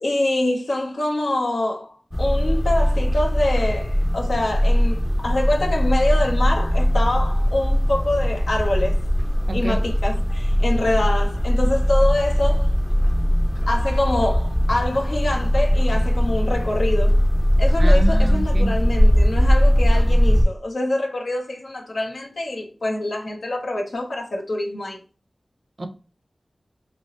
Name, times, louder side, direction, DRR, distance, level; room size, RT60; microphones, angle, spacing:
voice 1, 0.0-9.0 9.5-12.7 13.7-17.2 17.6-25.0, left 1 dB, 85° left, 0.8 m, -25 dB
sound 1, 2.1-20.4, equal, 15° left, 0.5 m, -19 dB
voice 2, 9.5-9.8 17.8-18.7 25.8-25.9, right 2 dB, 50° right, 0.5 m, -28 dB
3.3 x 2.9 x 2.6 m
wide cardioid pair, 70°, 0 cm